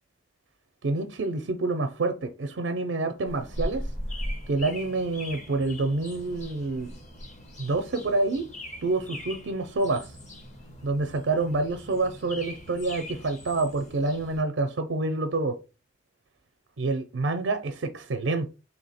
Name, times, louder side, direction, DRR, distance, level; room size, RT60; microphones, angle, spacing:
voice 1, 0.8-3.9 4.5-7.0 7.6-8.4 8.8-10.1 10.8-15.6 16.8-18.5, right 3 dB, 85° right, 0.5 m, -27 dB
sound 1, 3.2-14.4, left 1 dB, 40° left, 1.1 m, -39 dB
3.4 x 2.8 x 4.1 m
head